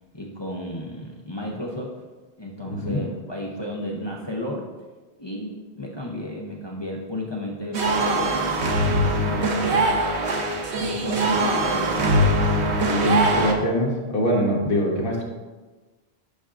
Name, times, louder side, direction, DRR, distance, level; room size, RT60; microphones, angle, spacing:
voice 1, 0.1-2.0 2.4-4.7 5.2-9.9 10.8-12.1, left 1 dB, 25° left, -3 dB, 0.8 m, -33 dB
voice 2, 2.6-3.0 12.8-15.2, equal, 60° left, -2 dB, 1.4 m, -23 dB
sound 1, 7.7-13.5, right 1 dB, 90° right, 1.1 m, -22 dB
10.5 x 5.9 x 2.5 m, 1.3 s
omnidirectional pair, 1.1 m